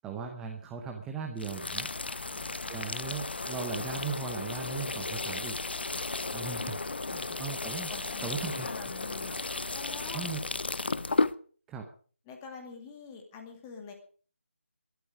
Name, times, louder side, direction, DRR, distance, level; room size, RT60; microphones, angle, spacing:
voice 1, 0.0-1.9 2.7-5.6 6.3-6.8 7.2-8.8 10.1-10.4 11.7-11.9, right 5 dB, 5° right, 3 dB, 0.7 m, -38 dB
sound 1, 1.4-11.3, left 3 dB, 50° left, 0.7 m, -34 dB
voice 2, 7.1-7.4 7.9-9.4 9.7-10.2 12.3-13.9, left 5 dB, 10° left, 3 dB, 2.2 m, -46 dB
18.5 x 12.5 x 5.0 m, 0.44 s
figure-of-eight pair, 160°, 7 cm